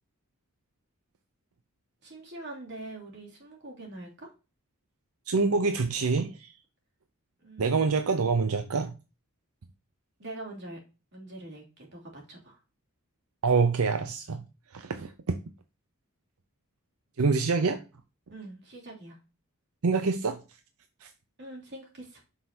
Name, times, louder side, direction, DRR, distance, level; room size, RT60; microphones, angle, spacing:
voice 1, 2.0-4.3 7.4-8.0 10.2-10.8 11.1-12.6 18.3-19.2 21.4-22.2, right 2 dB, 55° right, 3.1 m, -44 dB
voice 2, 5.3-6.5 7.6-8.9 13.4-14.4 14.7-15.3 17.2-17.8 19.8-20.4 21.0-21.1, right 4 dB, 90° right, 0.7 m, -26 dB
7.7 x 6.3 x 2.8 m
head